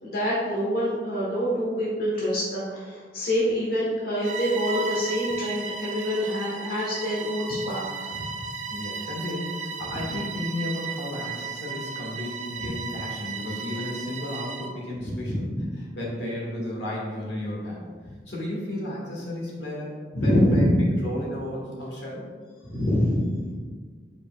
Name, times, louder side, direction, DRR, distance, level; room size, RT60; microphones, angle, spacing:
voice 1, 0.0-8.1 15.0-15.4 20.1-20.8 22.6-23.3, equal, 55° left, -6 dB, 1.4 m, -25 dB
Bowed string instrument, 4.2-14.8, right 5 dB, 40° right, 0.5 m, -35 dB
voice 2, 8.7-15.5 15.9-17.8 18.3-20.7 21.0-22.2, left 1 dB, 80° left, -4 dB, 1.8 m, -33 dB
8.0 x 4.9 x 2.4 m, 1.5 s
head